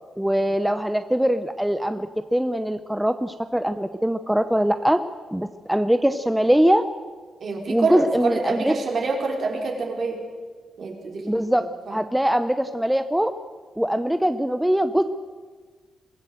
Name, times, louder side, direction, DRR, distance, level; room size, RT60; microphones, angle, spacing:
voice 1, 0.2-5.0 5.3-6.8 7.7-8.7 11.3-13.3 13.8-15.0, equal, 5° right, 10 dB, 0.7 m, -22 dB
voice 2, 7.4-10.2 10.8-11.3 11.9-12.0, right 3 dB, 55° right, 1 dB, 4.8 m, -26 dB
23.5 x 16.0 x 7.9 m, 1.5 s
cardioid pair, 115°, 0 cm